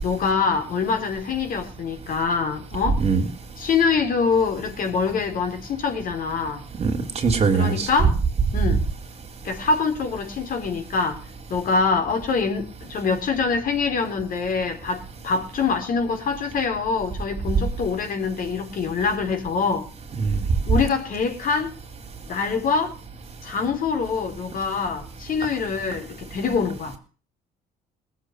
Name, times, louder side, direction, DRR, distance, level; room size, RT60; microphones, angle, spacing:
voice 1, 0.0-3.0 3.6-6.6 7.5-8.2 8.5-8.8 9.4-11.2 11.5-19.9 20.7-21.7 22.3-23.0 23.4-27.0, left 5 dB, 55° left, 3.9 m, -24 dB
voice 2, 6.8-7.9 20.2-20.4, right 5 dB, 40° right, 3.3 m, -21 dB
18.5 x 7.3 x 8.0 m
cardioid pair, 110°, 17 cm